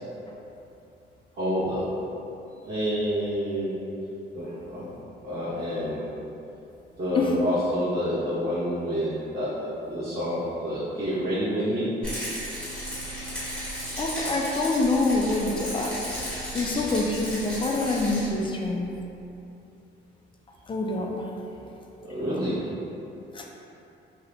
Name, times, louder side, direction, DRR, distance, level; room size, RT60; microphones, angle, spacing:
voice 1, 1.3-1.9 2.6-3.8 4.3-4.9 5.2-6.1 7.0-12.0 22.0-22.7, equal, 55° right, -14 dB, 1.2 m, -28 dB
Rattle, 12.0-18.3, equal, 5° left, 1.3 m, -34 dB
voice 2, 14.0-18.9 20.7-21.3 23.3-23.5, left 2 dB, 25° left, 0 dB, 0.4 m, -26 dB
2.8 x 2.5 x 3.2 m, 2.9 s
cardioid pair, 90°, 20 cm